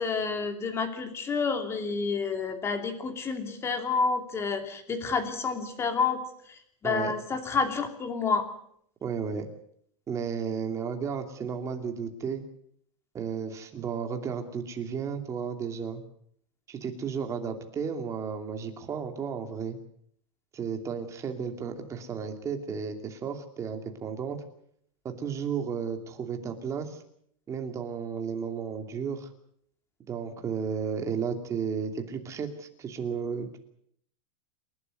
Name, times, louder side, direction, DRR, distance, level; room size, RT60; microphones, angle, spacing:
voice 1, 0.0-6.2 6.8-8.4, left 5 dB, 15° left, 6 dB, 2.9 m, -29 dB
voice 2, 9.0-9.5 10.1-12.4 13.1-16.0 16.7-19.8 20.5-24.4 25.0-27.0 27.5-29.3 30.1-33.5, right 6 dB, 20° right, 5 dB, 2.7 m, -33 dB
28.5 x 12.0 x 9.5 m, 0.68 s
supercardioid pair, 165°, 17 cm